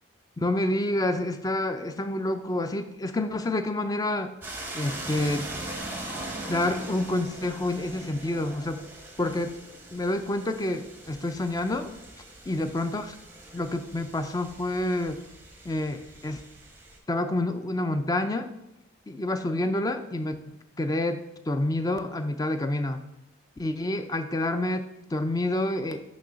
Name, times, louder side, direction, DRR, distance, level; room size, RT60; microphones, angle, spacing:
voice 1, 0.4-4.3 4.7-5.5 6.5-8.8 9.2-9.6 9.9-11.9 12.5-13.1 13.5-15.2 15.6-16.4 17.1-18.5 19.1-23.0 23.6-26.0, left 1 dB, 20° left, 8 dB, 0.4 m, -28 dB
sound 1, 4.4-17.0, right 2 dB, 10° right, 0.7 m, -41 dB
6.3 x 3.1 x 5.7 m, 0.89 s
head